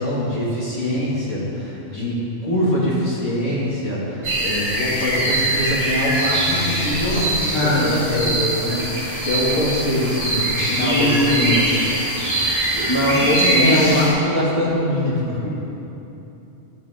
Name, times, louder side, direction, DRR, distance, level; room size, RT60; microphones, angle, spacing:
voice 1, 0.0-7.3 7.6-11.6 12.7-12.9 13.3-15.4, left 1 dB, 65° left, -7 dB, 2.8 m, -23 dB
sound 1, 4.2-14.1, right 1 dB, 85° right, 3.3 m, -22 dB
voice 2, 7.5-8.0 10.8-11.9 12.9-14.0 15.4-15.7, left 1 dB, 20° left, -7 dB, 2.1 m, -21 dB
12.5 x 12.5 x 3.7 m, 3.0 s
omnidirectional pair, 1.3 m